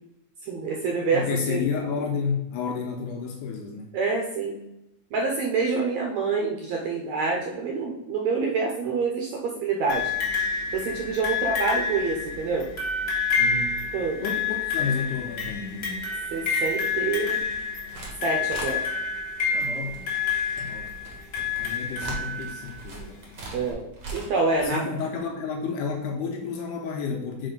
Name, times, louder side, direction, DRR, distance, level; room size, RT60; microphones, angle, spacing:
voice 1, 0.4-1.7 3.9-4.6 5.1-10.0 10.7-12.7 13.9-14.2 16.3-17.4 18.2-18.8 23.5-24.8, right 4 dB, 75° right, 0 dB, 1.6 m, -27 dB
voice 2, 1.1-3.9 13.4-13.8 14.2-16.1 19.5-20.1 20.6-21.0 21.6-23.2 24.6-27.5, left 5 dB, 75° left, 2 dB, 2.1 m, -31 dB
sound 1, 9.9-22.7 23.7-23.8, left 5 dB, 55° left, 1.1 m, -28 dB
sound 2, 17.5-18.1 18.4-18.7 19.5-24.7, right 3 dB, 45° right, 1.4 m, -40 dB
4.9 x 4.2 x 5.2 m, 0.87 s
omnidirectional pair, 4.0 m